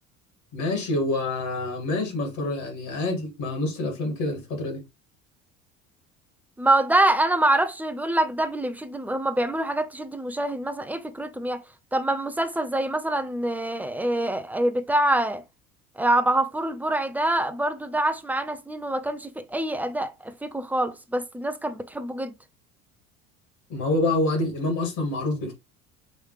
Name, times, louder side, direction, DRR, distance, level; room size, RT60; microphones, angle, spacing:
voice 1, 0.5-4.8 23.7-25.5, left 2 dB, 45° left, 2.2 m, -27 dB
voice 2, 6.6-11.6 11.9-15.4 16.0-22.3, right 1 dB, 5° right, 0.5 m, -25 dB
5.1 x 3.2 x 3.2 m
figure-of-eight pair, 65°, 40 cm